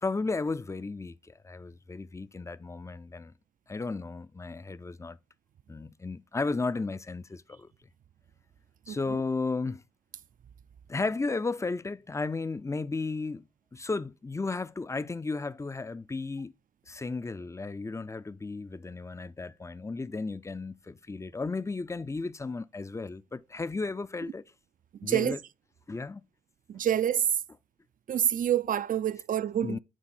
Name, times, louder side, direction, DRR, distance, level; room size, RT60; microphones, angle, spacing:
voice 1, 0.0-3.3 3.7-5.2 5.7-7.7 8.9-9.8 10.9-13.4 13.7-16.5 16.9-24.4 25.0-25.4 25.9-26.2 26.7-26.8 29.6-29.8, left 3 dB, 15° left, 0.4 m, -34 dB
voice 2, 25.0-25.4 26.7-27.3 28.1-29.8, right 10 dB, 50° right, 0.4 m, -27 dB
9.0 x 3.8 x 4.3 m
supercardioid pair, 55°, 18 cm